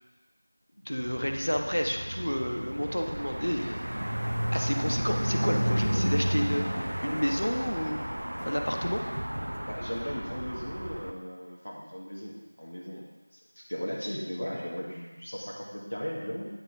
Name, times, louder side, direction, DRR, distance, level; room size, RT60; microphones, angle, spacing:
voice 1, 0.8-3.8 4.5-8.0 8.4-9.0, equal, 70° left, 3 dB, 0.9 m, -30 dB
sound 1, 1.0-11.1, equal, 60° right, 0.6 m, -32 dB
voice 2, 9.7-13.0 13.3-16.5, equal, 50° left, -4 dB, 1.5 m, -37 dB
9.9 x 3.6 x 4.1 m, 1.2 s
figure-of-eight pair, 180°, 0 cm